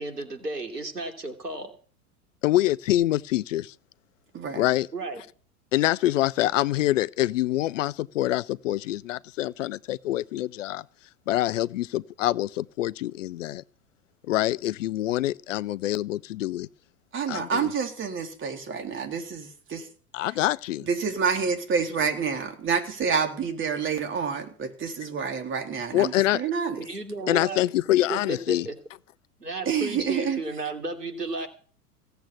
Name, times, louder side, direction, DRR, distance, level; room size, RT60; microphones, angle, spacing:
voice 1, 0.0-1.7 4.9-5.2 26.8-27.6 28.1-28.7 29.4-31.5, right 2 dB, 85° right, 3.0 m, -33 dB
voice 2, 2.4-3.7 4.6-4.9 5.7-10.8 11.3-13.6 14.3-16.7 17.3-17.7 20.1-20.9 25.9-26.4 27.3-28.7, left 15 dB, 55° left, 0.7 m, -25 dB
voice 3, 17.1-19.9 20.9-26.8 29.6-30.4, right 6 dB, 25° right, 3.5 m, -28 dB
16.5 x 7.9 x 8.5 m
figure-of-eight pair, 90°, 46 cm